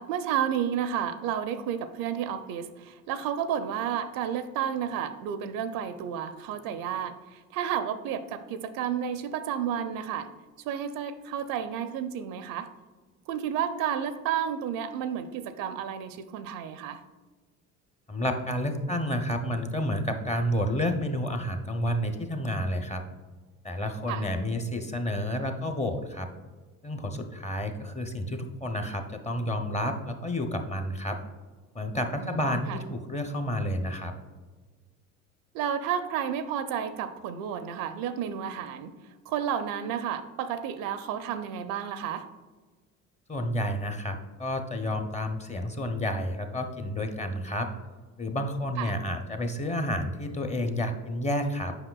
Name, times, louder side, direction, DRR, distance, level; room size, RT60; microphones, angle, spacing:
voice 1, 0.0-10.3 10.6-12.7 13.3-17.0 24.1-24.3 32.2-32.8 35.5-38.9 39.3-42.2 48.8-49.0, right 9 dB, 55° right, 11 dB, 0.5 m, -31 dB
voice 2, 18.1-23.0 23.6-26.3 26.8-31.2 31.7-34.1 43.3-47.7 48.2-51.8, left 1 dB, 15° left, 6 dB, 0.7 m, -30 dB
7.9 x 5.4 x 2.3 m, 1.4 s
hypercardioid pair, 65°, 42 cm